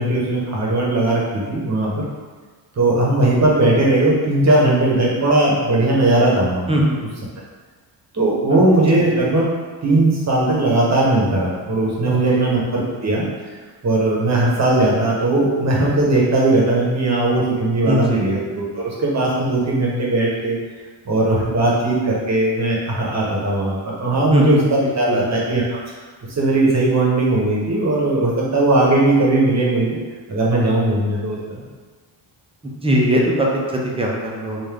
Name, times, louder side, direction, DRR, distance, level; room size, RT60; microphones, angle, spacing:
voice 1, 0.0-2.0 2.8-6.7 8.1-9.5 9.8-13.2 13.8-20.6 21.0-25.8 26.4-30.0 30.3-31.6, right 2 dB, 35° right, -4 dB, 1.0 m, -18 dB
voice 2, 6.7-7.0 8.5-8.6 9.0-9.1 12.1-12.5 17.9-18.3 24.3-25.2 32.8-34.6, equal, 10° right, -2 dB, 0.6 m, -20 dB
3.6 x 2.6 x 3.4 m, 1.4 s
cardioid pair, 110°, 50 cm